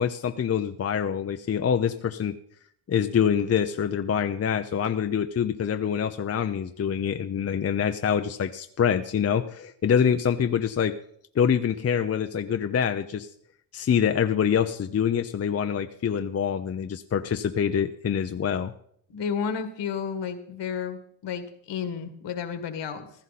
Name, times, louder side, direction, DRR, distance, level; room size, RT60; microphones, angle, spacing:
voice 1, 0.0-2.4 2.9-11.0 11.4-13.3 13.7-18.7, left 8 dB, 35° left, 7 dB, 0.7 m, -25 dB
voice 2, 19.1-23.1, left 7 dB, 70° left, 9 dB, 2.0 m, -32 dB
15.5 x 13.0 x 4.2 m, 0.65 s
cardioid pair, 90°, 44 cm